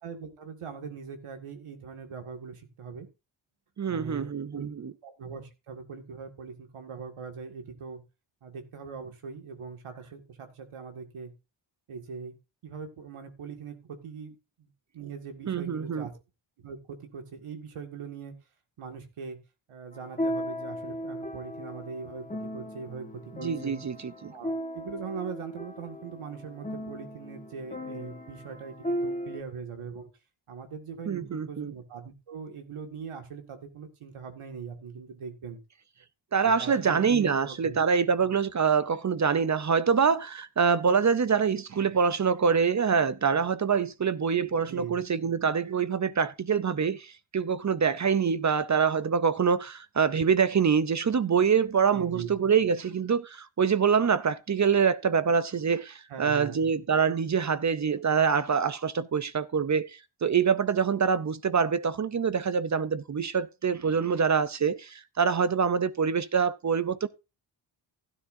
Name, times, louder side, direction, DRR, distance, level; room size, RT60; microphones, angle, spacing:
voice 1, 0.0-3.1 3.9-4.7 5.0-8.0 8.4-11.3 11.9-12.3 12.6-16.1 16.6-18.3 18.8-19.4 19.7-22.2 22.5-23.8 24.3-30.1 30.5-35.6 36.4-37.8 44.6-45.0 51.9-52.3 56.1-56.6, right 6 dB, 90° right, 2.1 m, -41 dB
voice 2, 3.8-4.9 15.4-16.1 23.4-24.3 31.1-31.7 36.3-67.1, right 6 dB, 35° right, 0.6 m, -25 dB
sound 1, 19.9-29.4, equal, 15° left, 1.4 m, -36 dB
16.0 x 9.9 x 2.7 m
wide cardioid pair, 115°, 49 cm